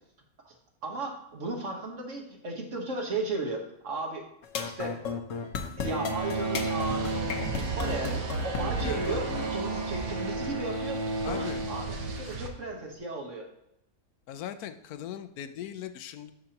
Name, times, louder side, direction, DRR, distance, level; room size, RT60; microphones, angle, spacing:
voice 1, 0.8-4.3 4.5-5.0 5.8-7.5 7.8-9.2 9.5-13.5, right 2 dB, 55° right, 2 dB, 1.7 m, -35 dB
sound 1, 4.4-9.5, left 4 dB, 60° left, 1.2 m, -34 dB
Bowed string instrument, 5.8-12.6, right 2 dB, 25° right, 0.6 m, -34 dB
sound 2, 6.2-12.5, right 4 dB, 75° right, 1.4 m, -37 dB
voice 2, 8.8-9.2 11.2-11.7 12.3-12.4 14.3-16.3, left 10 dB, 80° left, 10 dB, 1.1 m, -39 dB
12.5 x 5.0 x 2.9 m, 0.81 s
omnidirectional pair, 1.5 m